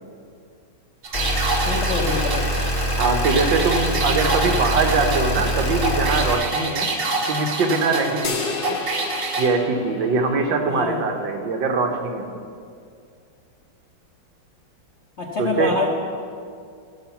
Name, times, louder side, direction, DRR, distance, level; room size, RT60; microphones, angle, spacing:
sound 1, 1.0-9.5, right 2 dB, 55° right, 1.9 m, -27 dB
sound 2, 1.1-6.3, equal, 30° left, 0.5 m, -24 dB
voice 1, 1.6-2.4 10.7-11.0 15.2-15.9, left 4 dB, 55° left, -1 dB, 0.8 m, -25 dB
voice 2, 3.0-6.9 7.3-8.8 9.4-12.2 15.4-15.7, right 3 dB, 70° right, 4 dB, 1.6 m, -22 dB
sound 3, 8.2-10.8, left 6 dB, 70° left, 1.4 m, -32 dB
13.5 x 5.7 x 5.7 m, 2.3 s
omnidirectional pair, 2.2 m